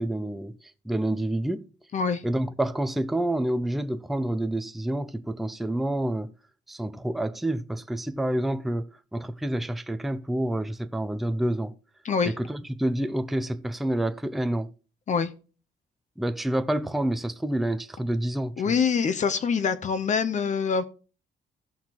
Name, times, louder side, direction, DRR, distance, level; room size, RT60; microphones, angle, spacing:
voice 1, 0.0-1.7 2.2-6.3 6.7-11.8 12.2-14.7 16.2-18.7, right 1 dB, ahead, 0.4 m, -28 dB
voice 2, 1.9-2.2 12.0-12.3 15.1-15.3 18.6-20.8, left 6 dB, 40° left, 0.8 m, -25 dB
16.0 x 5.8 x 3.0 m
cardioid pair, 145°, 18 cm